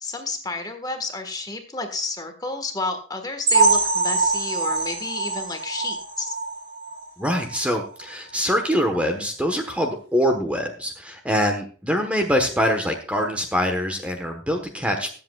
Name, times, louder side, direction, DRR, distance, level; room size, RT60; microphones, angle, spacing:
voice 1, 0.0-6.4, left 3 dB, 20° left, 6 dB, 1.5 m, -31 dB
sound 1, 3.5-7.1 7.5-7.6 8.0-8.1 8.6-8.7, right 3 dB, 55° right, 4.5 m, -23 dB
voice 2, 7.2-15.1, equal, 5° right, 3 dB, 1.2 m, -24 dB
21.5 x 7.8 x 2.4 m, 0.41 s
head